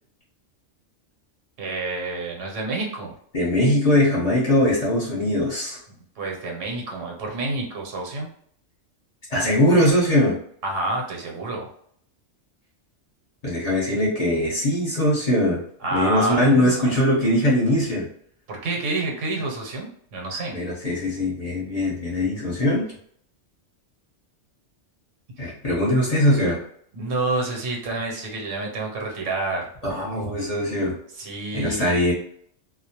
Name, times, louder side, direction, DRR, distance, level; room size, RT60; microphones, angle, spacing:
voice 1, 1.6-3.1 6.2-8.3 10.6-11.6 15.8-17.0 18.5-20.6 25.4-25.5 26.9-29.7 31.1-31.9, right 2 dB, 80° right, 0 dB, 1.1 m, -28 dB
voice 2, 3.3-5.8 9.3-10.3 13.4-15.6 15.9-18.1 20.5-22.8 25.4-26.6 29.8-31.0 31.5-32.1, left 1 dB, 35° left, -6 dB, 0.9 m, -21 dB
2.3 x 2.1 x 2.8 m, 0.63 s
omnidirectional pair, 1.3 m